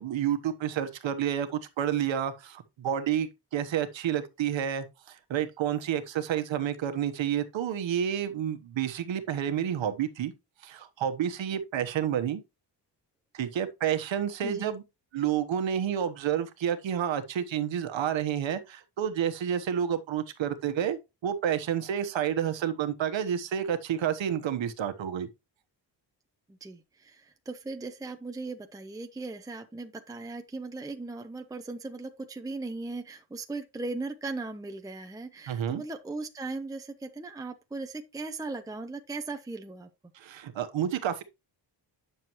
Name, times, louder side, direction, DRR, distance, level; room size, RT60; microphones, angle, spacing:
voice 1, 0.0-10.3 10.6-12.4 13.3-14.8 15.1-25.3 35.5-35.8 40.1-41.2, right 9 dB, 90° right, 1.2 m, -30 dB
voice 2, 26.5-39.9, right 3 dB, 10° right, 0.7 m, -38 dB
9.4 x 6.7 x 3.0 m
wide cardioid pair, 145°, 44 cm